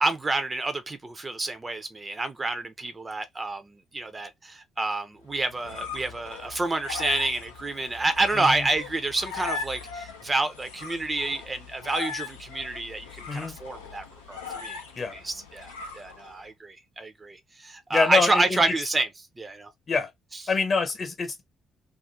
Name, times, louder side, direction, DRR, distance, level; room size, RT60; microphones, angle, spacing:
voice 1, 0.0-3.6 3.9-14.8 15.2-19.1 19.4-19.7, right 2 dB, 25° right, 0.5 m, -28 dB
sound 1, 5.3-16.5, left 5 dB, 80° left, 0.5 m, -39 dB
voice 2, 8.3-8.7 13.3-13.6 14.9-15.1 17.9-18.8 19.9-20.1 20.5-21.4, left 4 dB, 40° left, 1.0 m, -26 dB
2.5 x 2.4 x 3.2 m
figure-of-eight pair, 45°, 0 cm